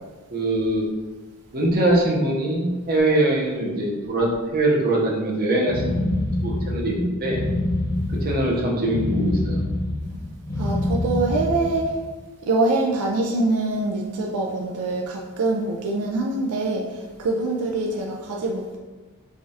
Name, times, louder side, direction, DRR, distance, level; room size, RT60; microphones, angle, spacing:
voice 1, 0.3-0.8 1.5-7.4 8.1-9.6, right 1 dB, 40° right, -3 dB, 0.7 m, -22 dB
sound 1, 5.7-12.0, left 1 dB, 15° left, 0.4 m, -26 dB
voice 2, 10.6-11.9 12.5-18.8, right 2 dB, 75° right, -1 dB, 0.4 m, -24 dB
4.8 x 2.3 x 2.7 m, 1.3 s
head